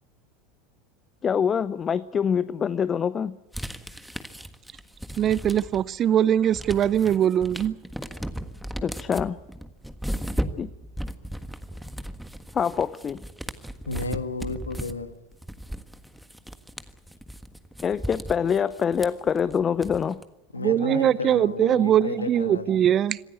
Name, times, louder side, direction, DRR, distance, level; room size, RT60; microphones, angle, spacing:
voice 1, 1.2-3.3 8.8-9.4 10.6-10.7 12.5-13.2 17.8-20.2, left 7 dB, 30° left, 0.7 m, -25 dB
sound 1, 3.5-6.0 6.3-20.2, equal, ahead, 1.5 m, -36 dB
voice 2, 5.2-7.8 20.6-23.2, right 10 dB, 35° right, 0.7 m, -22 dB
voice 3, 13.9-15.1 20.5-22.8, left 3 dB, 85° left, 1.4 m, -32 dB
26.0 x 15.5 x 8.3 m
figure-of-eight pair, 80°, 0 cm